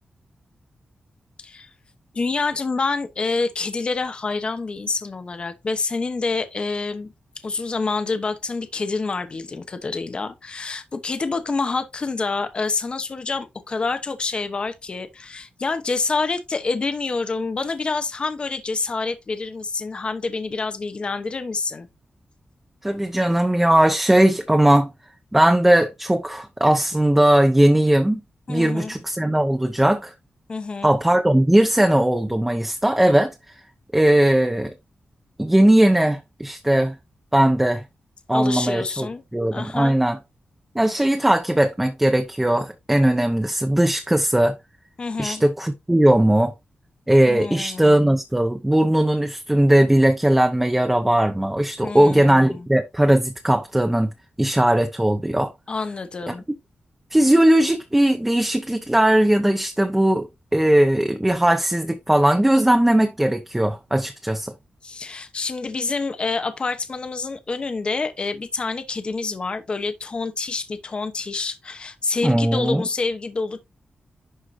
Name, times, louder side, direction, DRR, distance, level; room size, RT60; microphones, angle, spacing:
voice 1, 2.1-7.1 7.4-21.9 28.5-28.9 30.5-30.9 38.3-39.2 39.5-40.0 45.0-45.4 47.3-48.1 51.8-52.7 55.7-56.4 64.8-73.6, left 4 dB, 35° left, 0.9 m, -27 dB
voice 2, 22.8-24.9 25.3-28.2 28.5-30.1 30.8-33.6 33.9-34.7 35.4-37.0 37.3-37.8 38.3-40.2 40.7-44.5 45.2-46.5 47.1-54.1 54.4-55.5 56.3-56.4 57.1-60.3 60.5-64.5 72.2-72.9, right 1 dB, 10° right, 0.7 m, -18 dB
11.0 x 4.5 x 2.6 m
wide cardioid pair, 150°, 3 cm